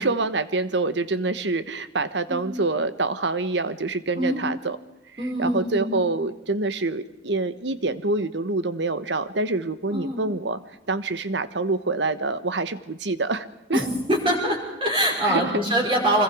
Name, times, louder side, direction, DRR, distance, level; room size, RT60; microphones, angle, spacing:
voice 1, 0.0-4.8 5.4-10.6 10.9-13.8 15.0-15.6, right 3 dB, 75° right, 12 dB, 1.2 m, -26 dB
voice 2, 5.2-5.9 9.9-10.3 13.7-16.2, right 1 dB, 30° right, -3 dB, 5.5 m, -24 dB
25.5 x 21.5 x 5.0 m, 0.94 s
head